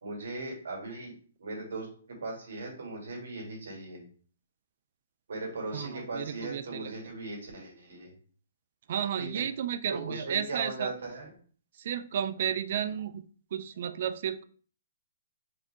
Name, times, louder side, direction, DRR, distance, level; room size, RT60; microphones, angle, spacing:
voice 1, 0.0-1.1 1.4-4.0 5.3-8.1 9.2-9.4 9.9-11.3 12.4-12.5, right 2 dB, 75° right, 0 dB, 2.3 m, -38 dB
voice 2, 5.7-6.9 8.9-10.9 11.7-13.2 13.5-14.4, right 9 dB, 45° right, 13 dB, 0.3 m, -33 dB
4.8 x 2.9 x 3.4 m, 0.44 s
hypercardioid pair, 165°, 0 cm